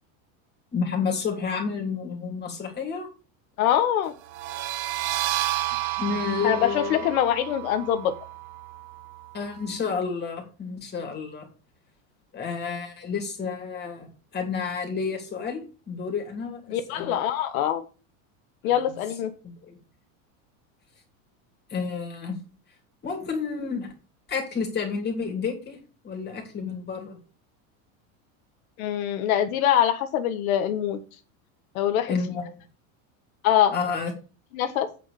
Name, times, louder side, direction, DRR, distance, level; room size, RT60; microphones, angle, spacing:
voice 1, 0.7-3.1 6.0-7.0 9.3-11.5 12.3-17.1 18.6-18.9 19.6-19.8 21.7-22.4 23.0-23.9 24.3-25.8 26.0-27.2 32.1-32.5 33.7-34.1, left 5 dB, 25° left, 2 dB, 3.2 m, -30 dB
voice 2, 3.6-4.1 6.4-8.1 16.7-17.8 18.6-19.3 28.8-31.0 31.7-32.1 33.4-33.7 34.5-34.9, left 10 dB, 75° left, 8 dB, 1.4 m, -24 dB
sound 1, 4.3-9.7, right 15 dB, 60° right, 1.1 m, -31 dB
8.4 x 5.2 x 6.6 m, 0.35 s
supercardioid pair, 140°, 42 cm